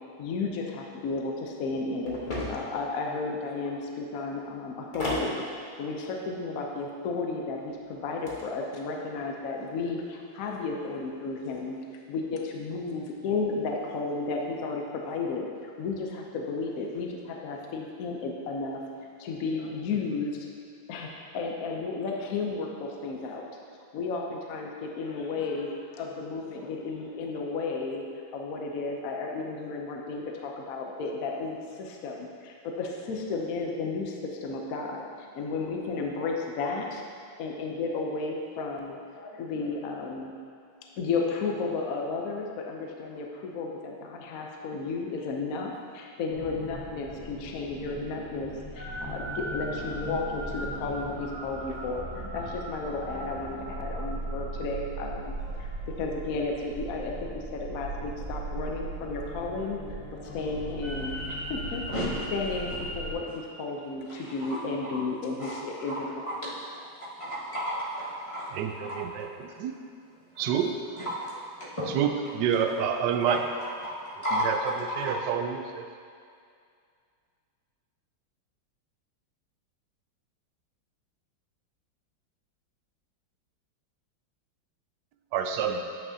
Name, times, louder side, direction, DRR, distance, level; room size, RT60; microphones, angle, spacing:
voice 1, 0.2-5.4 5.8-11.8 12.1-18.8 19.2-20.5 20.9-23.5 23.9-28.0 28.3-37.0 37.4-40.4 41.0-48.5 48.7-55.7 56.0-59.8 60.3-66.2, left 3 dB, 70° left, 1 dB, 0.8 m, -33 dB
sound 1, 2.1-2.8 4.9-5.3 8.0-8.4, left 1 dB, 35° left, 0.8 m, -33 dB
sound 2, 46.3-63.1, right 1 dB, 50° right, 2.0 m, -37 dB
voice 2, 61.9-62.2 64.1-64.6 64.9-65.0 65.4-66.4 66.7-69.1 70.3-70.5 70.9-72.9 73.2-75.2, equal, 15° left, -10 dB, 1.5 m, -34 dB
voice 3, 68.6-69.3 70.4-70.7 71.9-73.4 74.5-74.6 75.0-75.8 85.3-85.8, right 8 dB, 75° right, 5 dB, 1.0 m, -27 dB
9.1 x 5.9 x 2.7 m, 2.3 s
omnidirectional pair, 2.2 m